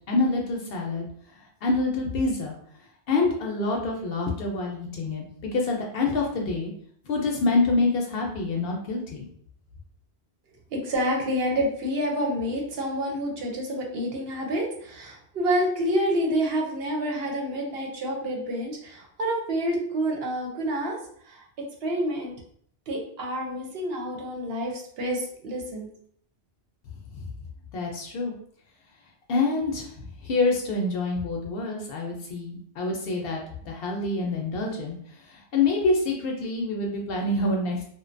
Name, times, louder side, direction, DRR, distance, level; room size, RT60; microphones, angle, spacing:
voice 1, 0.1-1.0 1.6-2.5 3.1-6.7 7.0-9.3 27.7-28.3 29.3-29.9 30.2-35.0 35.3-37.9, left 3 dB, 65° left, 0 dB, 0.7 m, -26 dB
voice 2, 10.7-21.0 21.2-21.4 21.8-22.3 22.9-25.9, equal, 65° right, 0 dB, 0.8 m, -28 dB
2.5 x 2.1 x 2.5 m, 0.62 s
omnidirectional pair, 1.2 m